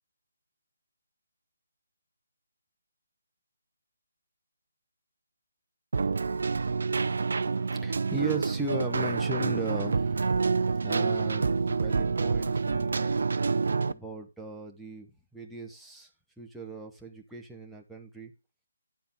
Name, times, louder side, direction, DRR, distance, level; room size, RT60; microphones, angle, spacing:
Keyboard (musical), 5.9-13.9, right 4 dB, 60° right, 0.5 m, -27 dB
voice 1, 7.6-10.4 10.8-13.2 13.9-16.1 16.4-18.3, right 2 dB, ahead, 1.0 m, -38 dB
10.5 x 7.1 x 3.6 m
figure-of-eight pair, 145°, 0 cm